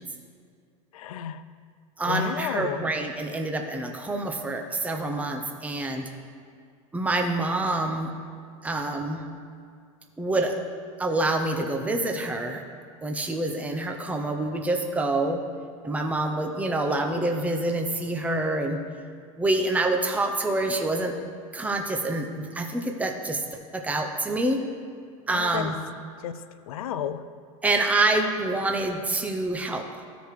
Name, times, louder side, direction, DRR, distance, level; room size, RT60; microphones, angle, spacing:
voice 1, 0.9-1.4 2.1-2.9 25.3-25.7 26.2-27.2, left 9 dB, 85° left, 12 dB, 0.5 m, -32 dB
voice 2, 2.0-6.1 6.9-8.1 8.6-9.2 10.2-10.5 11.0-12.6 13.0-15.4 15.8-18.8 19.4-21.1 21.5-23.4 23.7-24.6 25.3-25.7 27.6-29.9, right 2 dB, 10° right, 3 dB, 0.8 m, -26 dB
14.5 x 5.0 x 3.3 m, 2.2 s
supercardioid pair, 110°, 18 cm